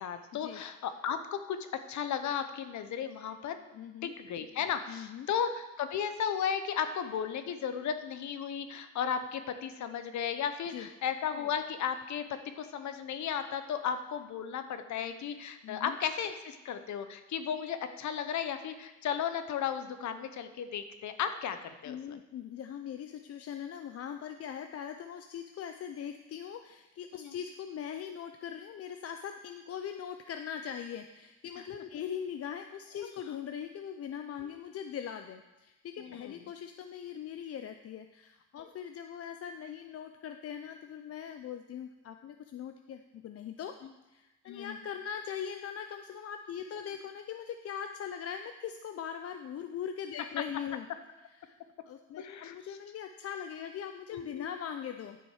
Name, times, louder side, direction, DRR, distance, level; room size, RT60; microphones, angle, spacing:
voice 1, 0.0-3.6 4.0-22.0 27.1-27.3 36.0-36.3 38.6-38.7 44.5-44.8 52.2-52.5 54.1-54.5, left 8 dB, 70° left, 9 dB, 0.9 m, -35 dB
voice 2, 3.7-4.1 4.9-5.3 10.7-10.9 15.6-16.0 21.8-43.7 44.1-50.9 51.2-51.6 51.8-55.2, left 8 dB, 50° left, 7 dB, 0.5 m, -41 dB
10.5 x 6.3 x 4.8 m, 1.0 s
cardioid pair, 90°, 30 cm